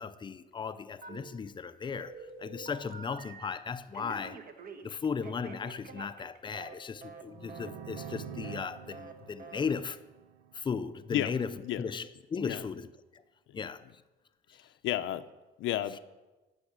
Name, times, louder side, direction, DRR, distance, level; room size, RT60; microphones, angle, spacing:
voice 1, 0.0-2.1 2.4-4.4 4.8-10.0 10.5-11.5 11.8-12.9 13.1-13.2 13.5-13.9, left 6 dB, 25° left, 0.6 m, -36 dB
Telephone, 1.0-1.6 2.0-3.6 3.9-6.8 7.0-7.2 7.5-7.7 8.0-8.2 8.4-8.7 8.9-9.1 9.4-9.6, right 5 dB, 45° right, 1.3 m, -47 dB
sound 1, 7.2-11.0, right 8 dB, 85° right, 0.8 m, -46 dB
voice 2, 14.5-15.3 15.6-16.0, left 12 dB, 70° left, 0.7 m, -32 dB
11.5 x 7.0 x 8.6 m
cardioid pair, 135°, 21 cm